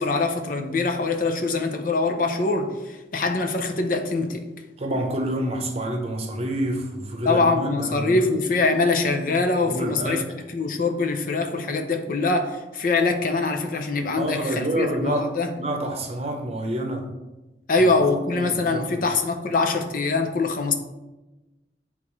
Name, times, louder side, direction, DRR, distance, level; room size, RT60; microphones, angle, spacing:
voice 1, 0.0-4.5 7.3-10.2 10.5-15.5 17.7-20.7, left 3 dB, 50° left, 5 dB, 0.6 m, -23 dB
voice 2, 4.8-8.3 9.6-10.3 14.2-15.3 15.6-17.1 17.8-19.1, right 1 dB, 35° right, 3 dB, 0.9 m, -28 dB
9.2 x 3.6 x 3.2 m, 1.1 s
head